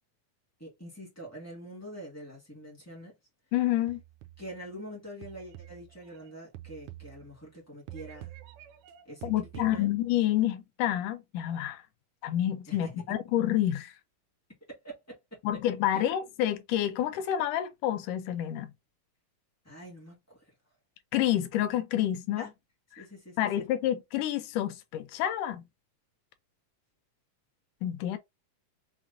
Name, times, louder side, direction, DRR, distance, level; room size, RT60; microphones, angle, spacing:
voice 1, 0.6-3.2 4.4-8.3 9.0-9.9 12.7-13.0 14.7-15.4 15.9-16.1 19.6-20.4 22.4-22.5 23.0-23.4, equal, 20° left, 0.4 m, -45 dB
voice 2, 3.5-4.0 9.2-11.8 12.2-13.9 15.4-18.7 21.1-22.5 23.4-25.6 27.8-28.2, left 12 dB, 80° left, 2.1 m, -28 dB
sound 1, 3.9-4.6 5.2-7.6 7.9-10.2, right 14 dB, 80° right, 1.8 m, -48 dB
5.9 x 2.1 x 2.6 m
omnidirectional pair, 3.8 m